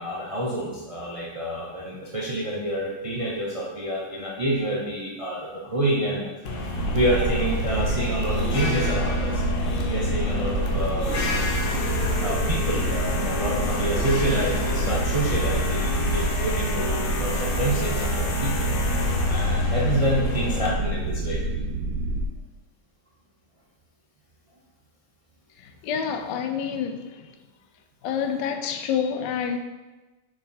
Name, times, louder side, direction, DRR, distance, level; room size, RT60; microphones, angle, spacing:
voice 1, 0.0-6.3 6.9-9.4 9.8-11.2 12.2-18.7 19.3-21.4, right 1 dB, 40° right, -4 dB, 0.5 m, -28 dB
sound 1, 6.4-20.7, left 4 dB, 60° left, 0.5 m, -29 dB
sound 2, 6.8-22.3, right 2 dB, 85° right, 1.4 m, -27 dB
voice 2, 25.6-27.3 28.0-29.6, left 7 dB, 80° left, 6 dB, 1.2 m, -28 dB
6.3 x 4.5 x 4.2 m, 1.2 s
omnidirectional pair, 1.9 m